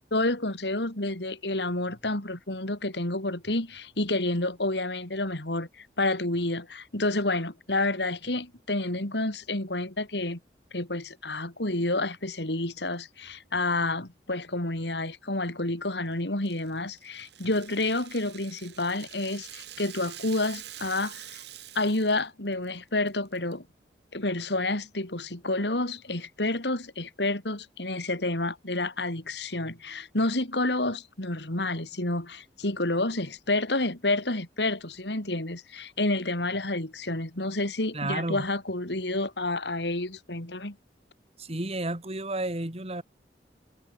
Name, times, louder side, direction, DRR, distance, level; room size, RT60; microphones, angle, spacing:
voice 1, 0.1-10.4 10.7-21.4 21.8-23.6 24.1-40.8, left 2 dB, 70° left, 3.7 m, -29 dB
Rattle (instrument), 16.4-22.3 22.5-22.7 23.1-23.5, right 12 dB, 65° right, 5.1 m, -46 dB
voice 2, 37.9-38.4 41.4-43.0, right 2 dB, 35° right, 2.6 m, -31 dB
head